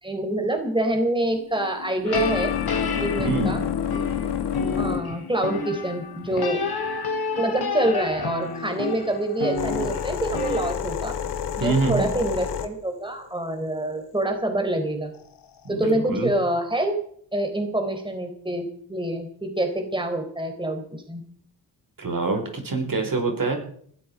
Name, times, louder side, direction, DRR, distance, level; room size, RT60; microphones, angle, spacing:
voice 1, 0.0-2.5 3.0-3.6 4.8-6.6 7.4-11.1 11.6-15.1 15.7-17.0 17.3-21.2, right 1 dB, 10° right, 5 dB, 4.2 m, -26 dB
sound 1, 1.3-7.6 8.4-14.2 15.2-15.7, left 9 dB, 85° left, 2.0 m, -30 dB
sound 2, 2.0-10.7, left 4 dB, 65° left, 3.1 m, -30 dB
voice 2, 3.2-3.6 11.6-12.1 15.6-16.3 22.0-23.6, right 3 dB, 55° right, 3 dB, 5.3 m, -25 dB
20.0 x 13.0 x 4.9 m, 0.63 s
cardioid pair, 55°, 40 cm